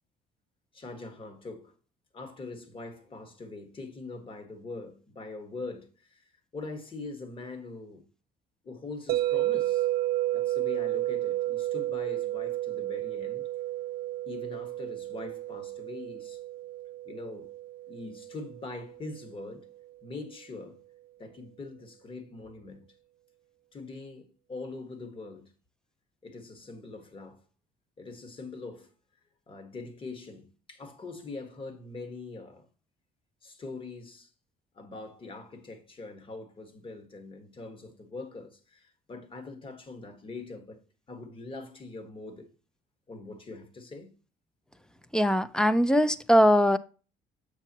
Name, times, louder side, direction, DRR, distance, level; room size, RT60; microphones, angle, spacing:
voice 1, 0.7-1.7 2.1-8.1 8.6-9.9 10.3-13.5 14.3-16.4 17.0-17.5 17.9-19.7 20.0-20.8 21.2-22.8 23.7-25.5 26.2-27.4 28.0-28.9 29.5-32.7 33.4-34.3 34.7-40.8 41.1-42.5 43.1-44.1, left 3 dB, 30° left, 1.5 m, -43 dB
sound 1, 9.1-19.2, right 15 dB, 70° right, 0.4 m, -32 dB
voice 2, 45.1-46.8, equal, 5° left, 0.4 m, -21 dB
7.0 x 6.9 x 2.9 m
cardioid pair, 110°, 17 cm